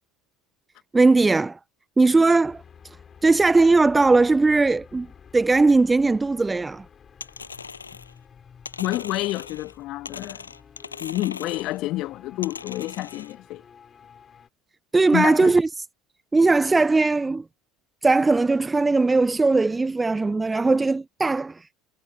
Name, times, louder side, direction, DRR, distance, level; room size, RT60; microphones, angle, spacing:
voice 1, 0.9-1.6 2.0-2.6 3.2-5.1 5.3-6.8 14.9-15.7 16.3-17.4 18.0-21.6, right 3 dB, 15° right, 0.3 m, -19 dB
sound 1, 2.4-14.5, left 7 dB, 30° left, 4.8 m, -50 dB
sound 2, 7.2-8.2 8.6-9.8 10.0-11.8 12.4-13.3, left 5 dB, 85° left, 6.9 m, -39 dB
voice 2, 8.8-10.5 11.0-13.6 15.1-15.5, left 17 dB, 55° left, 1.5 m, -29 dB
figure-of-eight pair, 70°, 0 cm